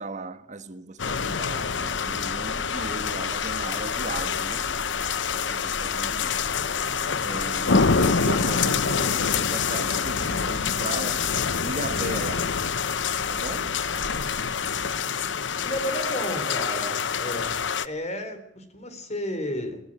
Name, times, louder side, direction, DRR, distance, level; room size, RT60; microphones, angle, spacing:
voice 1, 0.0-4.7 5.3-6.5 7.2-11.3 11.6-12.5 13.3-13.7, right 2 dB, 40° right, 1.5 m, -37 dB
sound 1, 1.0-17.9, left 6 dB, 80° left, 0.9 m, -26 dB
sound 2, 1.5-8.9, equal, 10° right, 4.6 m, -42 dB
sound 3, 8.8-15.0, right 1 dB, 65° right, 1.3 m, -42 dB
voice 2, 15.6-17.5 17.8-19.8, equal, 40° left, 4.0 m, -32 dB
22.5 x 16.5 x 9.0 m
head